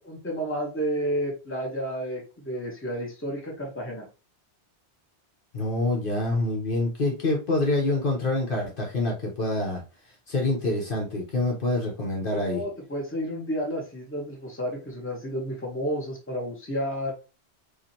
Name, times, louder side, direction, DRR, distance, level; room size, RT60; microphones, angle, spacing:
voice 1, 0.0-4.1 12.4-17.1, equal, 10° left, -1 dB, 1.1 m, -31 dB
voice 2, 5.5-9.8 10.3-12.6, left 2 dB, 55° left, -1 dB, 1.1 m, -26 dB
4.8 x 2.6 x 2.8 m, 0.32 s
omnidirectional pair, 1.2 m